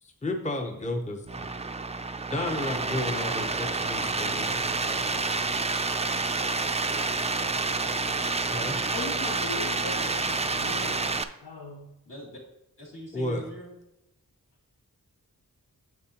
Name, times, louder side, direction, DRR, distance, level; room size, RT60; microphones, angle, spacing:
voice 1, 0.0-1.5 2.3-4.7 8.5-8.9 13.1-13.5, left 1 dB, 20° left, 0.8 m, -32 dB
sound 1, 1.3-11.2, right 3 dB, 20° right, 0.4 m, -29 dB
voice 2, 4.2-5.5 12.1-12.4 12.8-13.7, equal, 60° left, 2.5 m, -44 dB
voice 3, 8.9-11.9, left 3 dB, 85° left, 0.8 m, -39 dB
9.2 x 6.8 x 2.9 m
wide cardioid pair, 75°, 36 cm